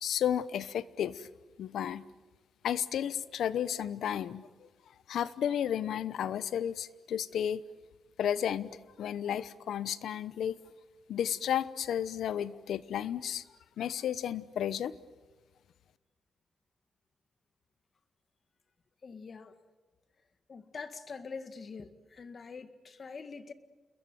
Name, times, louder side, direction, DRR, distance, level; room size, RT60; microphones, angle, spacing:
voice 1, 0.0-1.3 1.6-2.0 2.6-4.7 5.1-7.6 8.2-10.6 11.1-13.4 13.8-15.0, left 9 dB, 90° left, 0.9 m, -33 dB
voice 2, 19.0-19.5 20.5-23.5, left 4 dB, 45° left, 2.0 m, -44 dB
29.0 x 21.5 x 9.3 m
cardioid pair, 105°, 0 cm